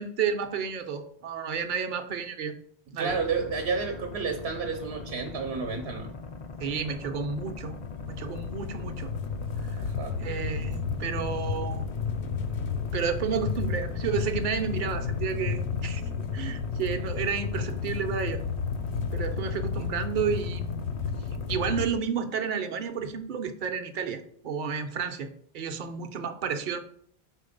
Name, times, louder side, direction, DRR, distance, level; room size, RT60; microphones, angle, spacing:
voice 1, 0.0-2.5 2.9-3.2 6.6-7.8 8.0-9.1 9.6-9.8 10.2-11.8 12.9-16.0 16.3-18.4 19.1-20.8 21.5-25.3 25.5-26.8, right 6 dB, 55° right, 6 dB, 0.7 m, -31 dB
voice 2, 3.0-6.2 9.8-10.2, right 5 dB, 75° right, 4 dB, 1.0 m, -31 dB
sound 1, 3.1-21.7, left 3 dB, 50° left, 0.4 m, -41 dB
sound 2, 7.3-21.9, left 6 dB, 90° left, 0.9 m, -32 dB
4.6 x 4.1 x 5.1 m, 0.62 s
omnidirectional pair, 1.1 m